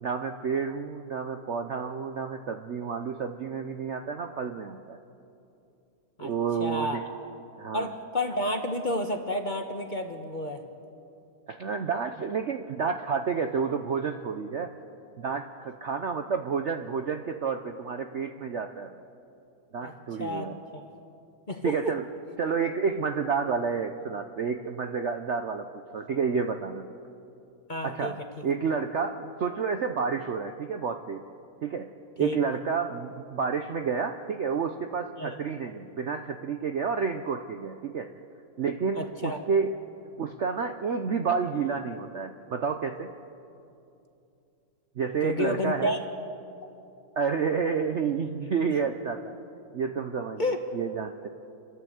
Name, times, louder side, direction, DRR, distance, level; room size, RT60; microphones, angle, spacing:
voice 1, 0.0-5.0 6.2-7.0 7.6-7.9 11.5-14.7 15.2-18.9 19.7-20.6 21.6-22.0 22.4-25.7 25.9-26.9 27.8-28.2 28.4-31.2 31.6-31.9 32.2-38.1 38.6-39.7 40.2-43.1 45.0-45.9 47.2-49.3 49.7-50.4 50.7-51.3, right 6 dB, 55° right, 6 dB, 0.8 m, -30 dB
voice 2, 6.6-7.0 7.7-10.6 19.8-20.5 20.7-20.8 21.5-21.7 27.7-28.1 32.2-32.4 35.2-35.4 38.9-39.4 45.2-46.0 50.4-50.6, left 1 dB, 30° left, 5 dB, 1.1 m, -30 dB
28.5 x 12.5 x 7.8 m, 2.7 s
omnidirectional pair, 1.9 m